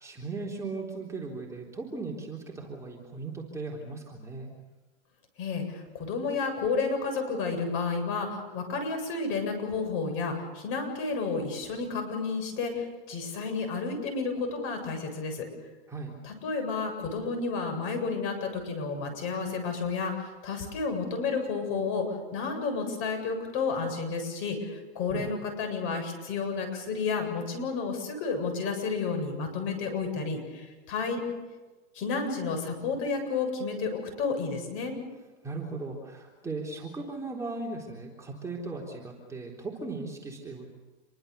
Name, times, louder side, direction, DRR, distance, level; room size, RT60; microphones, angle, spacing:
voice 1, 0.0-4.5 15.9-16.1 25.1-25.3 35.4-40.7, right 3 dB, 10° right, -2 dB, 3.7 m, -37 dB
voice 2, 5.4-15.4 16.2-22.1 22.3-31.2 31.9-35.0, left 4 dB, 35° left, 5 dB, 7.8 m, -31 dB
28.0 x 23.0 x 6.9 m, 1.2 s
hypercardioid pair, 135°, 33 cm